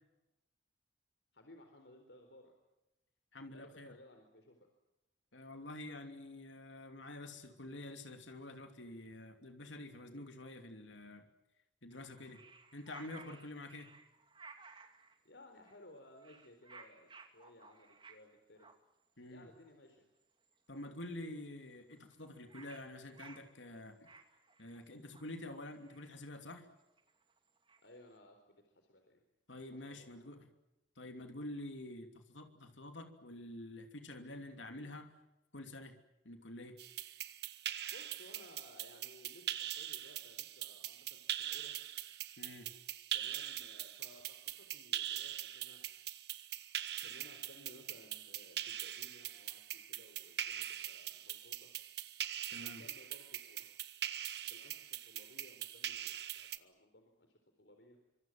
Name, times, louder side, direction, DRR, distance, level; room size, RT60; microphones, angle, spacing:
voice 1, 1.3-2.5 3.5-4.7 15.2-18.7 19.3-20.1 27.8-29.2 29.7-30.2 37.9-41.7 43.1-45.8 47.0-51.7 52.5-53.7 54.4-58.0, left 1 dB, 70° left, 4 dB, 4.2 m, -60 dB
voice 2, 3.3-4.0 5.3-11.3 11.8-12.4 12.7-13.9 19.2-19.5 20.7-24.1 24.6-26.7 29.5-30.5 31.0-35.1 35.5-36.0 36.2-36.8 42.4-42.7 52.5-52.8, left 1 dB, 90° left, 6 dB, 3.0 m, -48 dB
sound 1, 11.9-15.2 15.6-15.9 16.1-18.3 18.6-18.8 19.4-19.5 19.7-19.9 20.2-20.5 20.8-20.9 21.1-21.2 21.4-28.1, right 4 dB, 25° right, 2.5 m, -58 dB
sound 2, 36.8-56.6, right 11 dB, 60° right, 1.3 m, -42 dB
26.0 x 25.5 x 7.6 m, 0.94 s
head